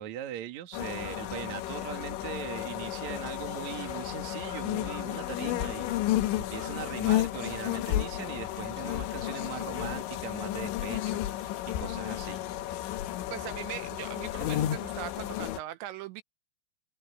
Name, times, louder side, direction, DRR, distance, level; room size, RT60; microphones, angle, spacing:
voice 1, 0.0-5.9 6.4-12.4, right 11 dB, 50° right, 2.4 m, -40 dB
sound 1, 0.7-15.6, left 13 dB, 80° left, 3.6 m, -32 dB
Crow, 0.8-8.2, right 1 dB, 5° right, 7.5 m, -55 dB
voice 2, 13.3-16.2, right 13 dB, 85° right, 3.1 m, -40 dB
omnidirectional pair, 5.3 m